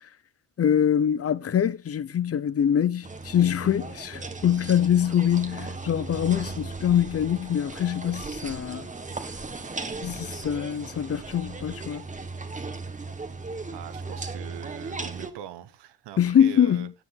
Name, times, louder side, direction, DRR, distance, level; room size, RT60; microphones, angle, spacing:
voice 1, 0.6-8.9 10.0-12.1 16.2-16.9, left 9 dB, 35° left, 0.7 m, -24 dB
sound 1, 3.0-15.3, right 3 dB, 20° right, 1.5 m, -37 dB
voice 2, 13.7-16.9, right 11 dB, 90° right, 1.2 m, -42 dB
16.0 x 7.0 x 3.7 m
cardioid pair, 125°, 40 cm